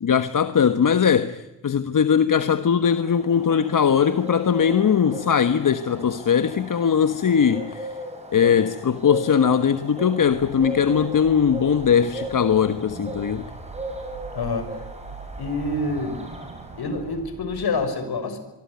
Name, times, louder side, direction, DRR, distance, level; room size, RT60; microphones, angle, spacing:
voice 1, 0.0-7.9 8.3-13.5, left 7 dB, 50° left, 11 dB, 1.4 m, -20 dB
Bird, 2.6-17.3, right 1 dB, 15° right, 7.7 m, -37 dB
sound 1, 10.2-17.8, right 4 dB, 65° right, 7.4 m, -42 dB
voice 2, 14.3-14.8 15.4-16.2 16.8-18.4, left 3 dB, 65° left, 10 dB, 6.0 m, -27 dB
24.5 x 24.0 x 9.6 m, 1.0 s
cardioid pair, 65°, 41 cm